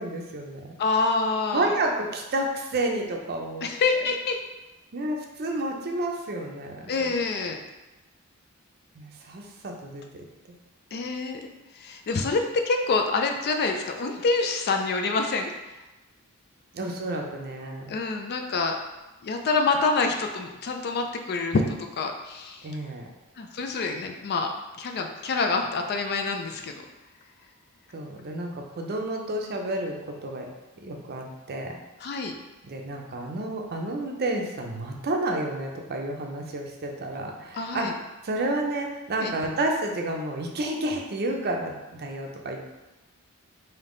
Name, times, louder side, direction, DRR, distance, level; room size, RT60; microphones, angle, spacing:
voice 1, 0.0-0.8 1.5-3.7 4.9-7.1 9.0-10.2 16.7-17.9 22.6-23.1 27.9-30.5 30.8-31.8 32.6-37.9 38.2-42.7, right 1 dB, 45° right, 2 dB, 0.5 m, -30 dB
voice 2, 0.8-1.7 3.6-4.4 6.9-7.6 10.9-15.5 17.9-18.8 19.2-22.7 23.4-26.7 32.0-32.3 37.6-37.9 39.2-39.3, left 3 dB, 45° left, 4 dB, 0.4 m, -26 dB
3.5 x 2.7 x 3.7 m, 1.1 s
head